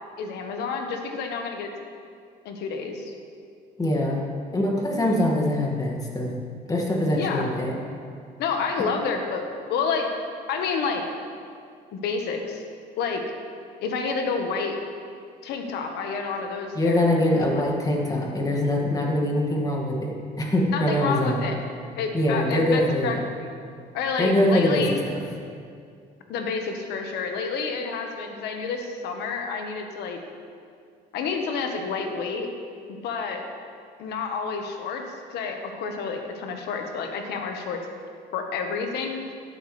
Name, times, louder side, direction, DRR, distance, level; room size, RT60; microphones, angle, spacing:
voice 1, 0.2-1.7 2.4-3.1 7.1-7.5 8.4-10.1 10.5-11.0 11.9-12.6 13.0-13.2 13.8-14.8 15.4-17.0 17.5-17.6 20.7-21.6 22.0-23.5 23.9-25.0 26.3-30.2 31.1-32.5 32.9-33.4 34.0-37.8 38.3-39.2, left 5 dB, 80° left, 4 dB, 1.4 m, -29 dB
voice 2, 3.8-4.2 4.5-6.3 6.7-7.7 16.7-21.5 22.1-23.2 24.2-25.2, left 1 dB, 20° left, -1 dB, 2.1 m, -23 dB
12.5 x 11.5 x 3.3 m, 2.3 s
cardioid pair, 110°, 17 cm